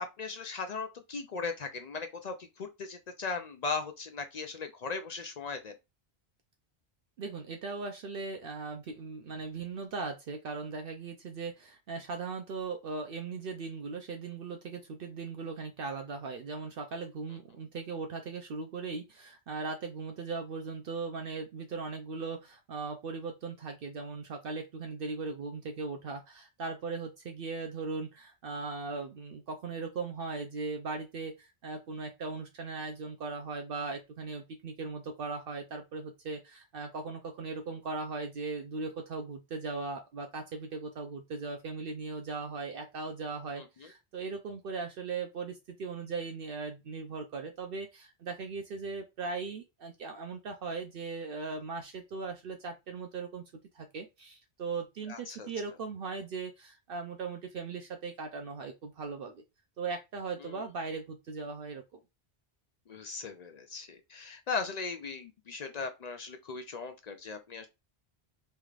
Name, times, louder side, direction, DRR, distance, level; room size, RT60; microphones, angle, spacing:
voice 1, 0.0-5.7 43.6-43.9 55.1-55.5 60.4-60.6 62.9-67.7, left 4 dB, 55° left, 0.5 m, -38 dB
voice 2, 7.2-53.4 53.7-59.4 59.8-61.8, right 4 dB, 65° right, 0.7 m, -38 dB
3.4 x 3.1 x 2.4 m
omnidirectional pair, 1.1 m